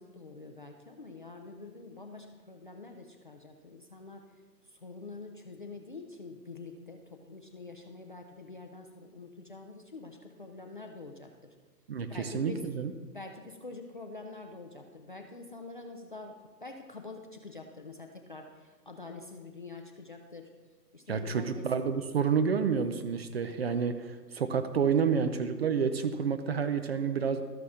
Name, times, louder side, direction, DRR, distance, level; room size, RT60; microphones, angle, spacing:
voice 1, 0.0-4.2 4.6-11.5 12.1-12.7 13.1-20.5 20.9-21.7, left 3 dB, 35° left, 3 dB, 0.4 m, -46 dB
voice 2, 11.9-12.9 21.1-27.4, right 6 dB, 40° right, 9 dB, 0.5 m, -29 dB
13.0 x 5.7 x 3.7 m, 1.4 s
hypercardioid pair, 140°, 50 cm